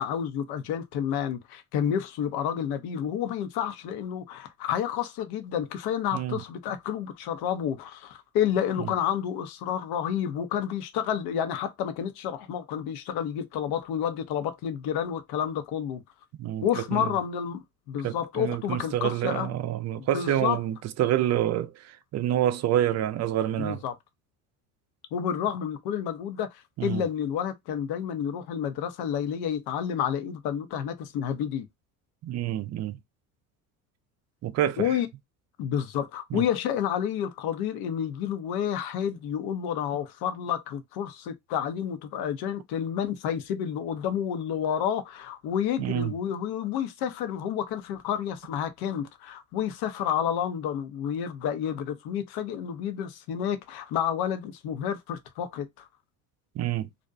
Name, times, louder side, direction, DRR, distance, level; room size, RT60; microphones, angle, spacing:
voice 1, 0.0-16.0 16.6-19.5 20.0-20.6 23.6-23.9 25.1-31.7 34.8-35.1 35.6-55.9, left 9 dB, 60° left, 0.8 m, -30 dB
voice 2, 16.4-17.1 18.0-23.8 26.8-27.0 32.2-33.0 34.4-35.0 36.3-36.4 45.8-46.1 56.6-56.9, right 12 dB, 40° right, 0.5 m, -28 dB
2.6 x 2.2 x 2.5 m
hypercardioid pair, 75°, 42 cm